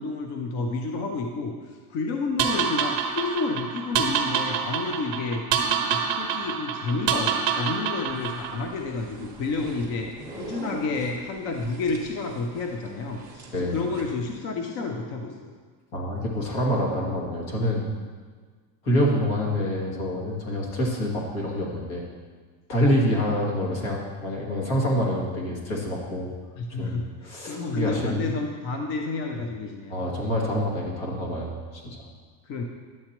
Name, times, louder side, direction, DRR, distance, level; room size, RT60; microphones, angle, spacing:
voice 1, 0.0-5.4 5.9-15.5 26.6-30.0 32.5-32.6, left 3 dB, 35° left, 3 dB, 0.4 m, -30 dB
sound 1, 2.4-8.6, right 7 dB, 40° right, 0.9 m, -27 dB
sound 2, 8.1-14.4, right 3 dB, 5° right, 1.0 m, -42 dB
voice 2, 13.5-13.8 15.9-17.8 18.8-22.0 22.7-26.3 26.7-28.2 29.9-32.0, equal, 60° left, -2 dB, 2.2 m, -26 dB
10.5 x 7.9 x 2.9 m, 1.5 s
cardioid pair, 170°, 48 cm